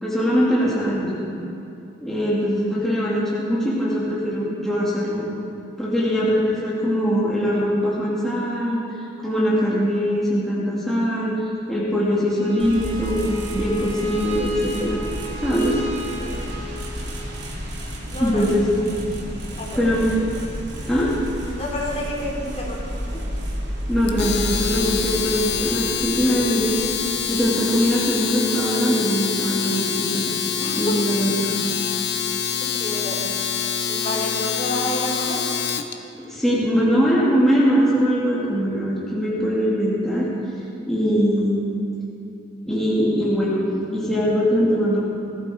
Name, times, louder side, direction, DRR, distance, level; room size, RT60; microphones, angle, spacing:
voice 1, 0.0-1.2 2.0-5.3 5.8-8.8 9.2-11.3 11.7-15.0 15.4-15.8 18.2-18.8 19.8-20.0 20.9-21.1 23.9-26.8 27.3-30.2 30.8-31.3 36.3-40.3 40.8-41.6 42.7-45.0, equal, ahead, -8 dB, 2.8 m, -21 dB
Bowed string instrument, 12.3-17.3, left 1 dB, 30° right, 2.7 m, -34 dB
sound 1, 12.6-28.6, equal, 60° right, 3.3 m, -32 dB
voice 2, 16.2-16.5 18.1-18.4 19.6-19.9 21.6-23.3 30.6-30.7 32.8-33.3 33.9-35.4, left 1 dB, 35° left, -4 dB, 3.6 m, -30 dB
Domestic sounds home sounds, 24.1-35.9, left 8 dB, 60° left, 0.9 m, -26 dB
18.5 x 15.0 x 4.7 m, 2.8 s
head